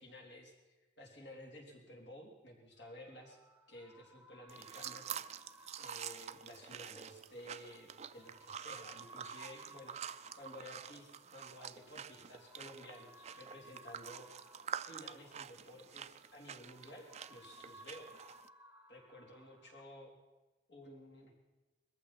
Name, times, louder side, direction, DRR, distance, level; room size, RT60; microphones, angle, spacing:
voice 1, 0.0-3.4 3.7-5.0 5.8-14.3 14.8-18.1 18.9-20.1 20.7-21.3, left 1 dB, 70° left, -1 dB, 3.6 m, -54 dB
sound 1, 2.8-19.8, right 1 dB, 10° right, 1.0 m, -61 dB
sound 2, 4.5-18.5, right 8 dB, 35° right, 0.4 m, -48 dB
21.5 x 14.5 x 4.3 m, 1.1 s
head